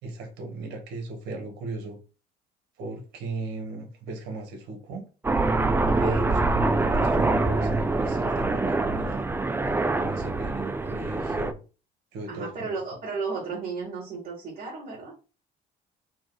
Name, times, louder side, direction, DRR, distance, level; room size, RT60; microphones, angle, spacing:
voice 1, 0.0-2.0 2.8-5.0 6.0-9.3 10.0-11.6 12.1-12.8, right 3 dB, 85° right, 4 dB, 1.5 m, -37 dB
Aircraft, 5.2-11.5, right 2 dB, 15° right, 0.4 m, -25 dB
voice 2, 5.9-6.2 12.3-15.1, right 4 dB, 55° right, -5 dB, 2.6 m, -34 dB
4.6 x 2.4 x 4.0 m, 0.33 s
cardioid pair, 110°, 17 cm